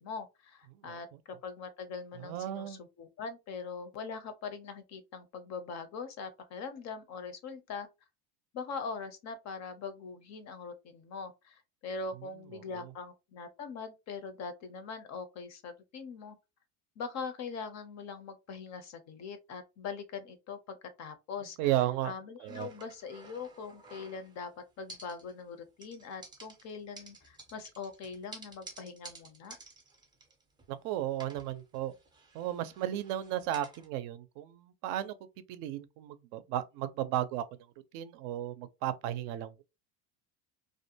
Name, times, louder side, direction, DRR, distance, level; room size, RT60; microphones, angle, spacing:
voice 1, 0.0-7.9 8.5-16.4 17.0-29.6, left 5 dB, 40° left, 0.5 m, -42 dB
voice 2, 2.2-2.8 12.7-12.9 21.6-22.1 22.4-22.7 30.7-31.9 32.3-35.2 35.5-37.4 37.9-39.6, right 12 dB, 60° right, 0.5 m, -34 dB
sound 1, 22.5-24.5 24.9-25.5 25.8-30.8 31.1-33.9, right 2 dB, 10° right, 0.4 m, -52 dB
2.5 x 2.1 x 2.7 m
supercardioid pair, 120°, 45 cm